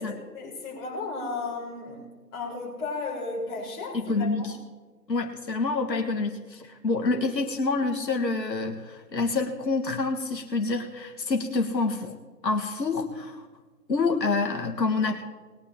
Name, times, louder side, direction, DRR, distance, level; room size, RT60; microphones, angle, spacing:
voice 1, 0.3-2.0 2.3-4.5, left 3 dB, 15° left, -8 dB, 4.7 m, -34 dB
voice 2, 3.9-4.6 5.1-12.2 12.4-13.5 13.9-15.2, left 3 dB, 80° left, 2 dB, 1.8 m, -27 dB
21.0 x 11.0 x 2.9 m, 1.3 s
hypercardioid pair, 165°, 50 cm